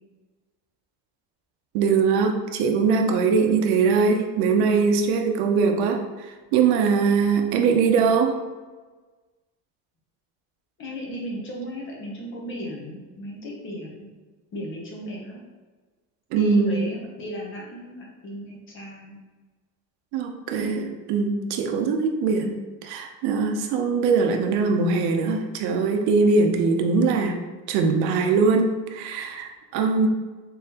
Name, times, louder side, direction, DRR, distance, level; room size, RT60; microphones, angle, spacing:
voice 1, 1.7-8.4 16.3-16.9 20.1-27.4 27.7-30.1, right 5 dB, 75° right, 5 dB, 0.6 m, -22 dB
voice 2, 10.8-14.1 14.5-15.4 16.3-19.2, equal, 35° left, -2 dB, 0.9 m, -35 dB
3.8 x 3.7 x 2.8 m, 1.3 s
cardioid pair, 175°, 38 cm